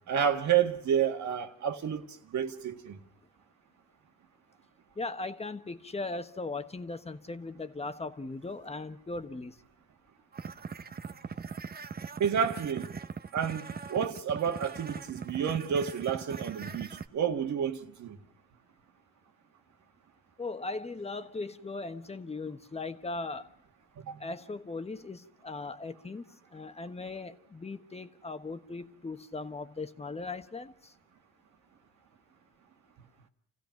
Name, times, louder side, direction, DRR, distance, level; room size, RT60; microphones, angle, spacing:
voice 1, 0.1-3.0 12.2-12.9 13.3-18.2 24.0-24.2, right 8 dB, 70° right, 2.0 m, -30 dB
voice 2, 4.9-9.6 20.4-23.5 24.2-30.9, left 3 dB, 20° left, 1.4 m, -38 dB
sound 1, 10.3-17.1, right 5 dB, 30° right, 0.9 m, -40 dB
29.5 x 16.0 x 5.9 m
cardioid pair, 90°, 30 cm